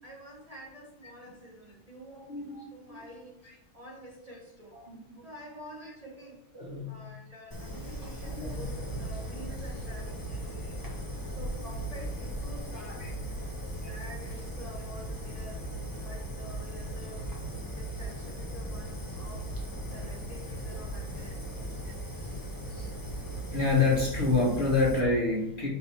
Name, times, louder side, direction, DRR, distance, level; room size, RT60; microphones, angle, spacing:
voice 1, 0.0-2.3 2.7-3.4 3.7-4.8 5.2-10.8 11.3-13.1 13.6-15.8 16.0-17.3 17.7-19.6 19.9-21.5 22.1-22.4, right 1 dB, 25° right, -4 dB, 1.2 m, -48 dB
voice 2, 2.2-2.6 2.9-3.0 4.8-5.2 6.5-7.1 8.2-8.9 13.0-13.1 22.7-22.9 23.5-25.7, left 3 dB, 35° left, -3 dB, 1.5 m, -28 dB
Fire, 7.5-25.0, right 1 dB, 15° left, 1.0 m, -38 dB
5.5 x 5.4 x 4.4 m, 0.87 s
omnidirectional pair, 1.6 m